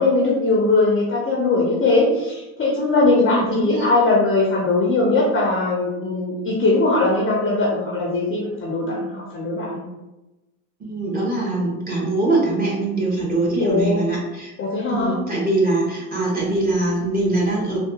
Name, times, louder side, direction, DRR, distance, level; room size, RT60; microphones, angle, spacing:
voice 1, 0.0-9.8 13.6-14.0 14.6-15.2, left 2 dB, 25° left, -3 dB, 0.7 m, -20 dB
voice 2, 3.2-3.9 10.8-14.5 14.9-17.8, right 2 dB, 20° right, -4 dB, 1.1 m, -22 dB
3.4 x 2.4 x 2.8 m, 1.0 s
hypercardioid pair, 100°, 49 cm